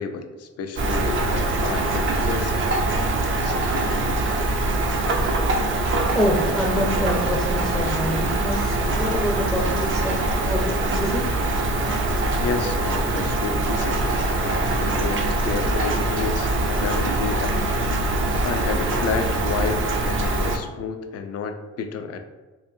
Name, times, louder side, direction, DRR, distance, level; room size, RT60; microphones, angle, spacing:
voice 1, 0.0-2.8 3.4-3.6 12.4-14.0 14.3-17.5 18.4-22.2, left 5 dB, 55° left, 7 dB, 0.5 m, -30 dB
Rain, 0.8-20.6, right 2 dB, 40° right, 0.5 m, -23 dB
voice 2, 6.1-11.3, equal, 5° left, -3 dB, 0.6 m, -26 dB
4.1 x 2.5 x 2.6 m, 1.3 s
cardioid pair, 90°, 30 cm